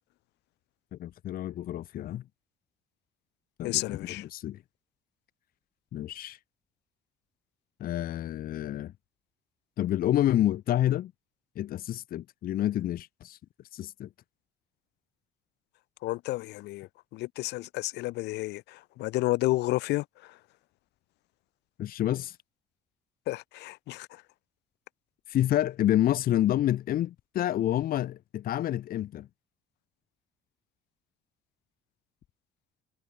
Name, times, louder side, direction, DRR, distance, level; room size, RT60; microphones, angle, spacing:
voice 1, 0.9-2.2 3.6-4.6 5.9-6.4 7.8-8.9 9.8-11.1 11.6-13.4 13.7-14.1 21.8-22.4 25.3-29.3, left 12 dB, 60° left, 1.1 m, -28 dB
voice 2, 3.6-4.3 16.0-20.4 23.3-24.2, left 19 dB, 85° left, 2.0 m, -31 dB
cardioid pair, 110°, 17 cm